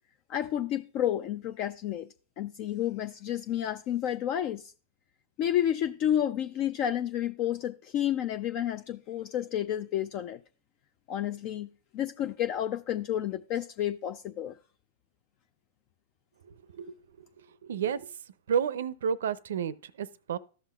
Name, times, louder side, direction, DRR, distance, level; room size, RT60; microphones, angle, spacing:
voice 1, 0.3-2.1 2.4-4.7 5.4-10.4 11.1-14.6, left 11 dB, 45° left, 0.4 m, -30 dB
voice 2, 17.6-18.1 18.5-20.4, right 7 dB, 75° right, 0.5 m, -30 dB
13.5 x 5.8 x 2.3 m
hypercardioid pair, 115°, 0 cm